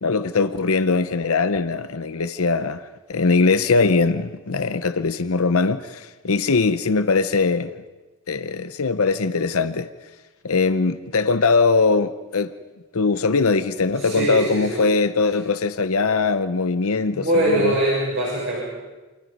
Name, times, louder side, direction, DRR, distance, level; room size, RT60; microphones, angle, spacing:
voice 1, 0.0-2.8 3.1-7.7 8.3-9.9 10.4-12.5 12.9-17.7, left 4 dB, 70° left, 0.8 m, -21 dB
voice 2, 14.0-14.9 17.1-18.6, right 1 dB, 55° right, 7.0 m, -22 dB
29.5 x 26.5 x 5.4 m
head